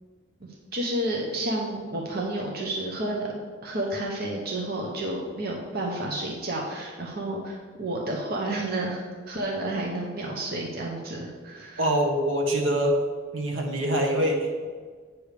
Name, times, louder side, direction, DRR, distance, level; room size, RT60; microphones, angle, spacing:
voice 1, 0.4-3.3 3.6-9.0 9.3-11.9, right 1 dB, 50° right, -1 dB, 0.9 m, -31 dB
voice 2, 11.8-13.0 13.3-14.7, right 1 dB, 80° right, 1 dB, 1.3 m, -24 dB
8.5 x 3.4 x 6.6 m, 1.6 s
head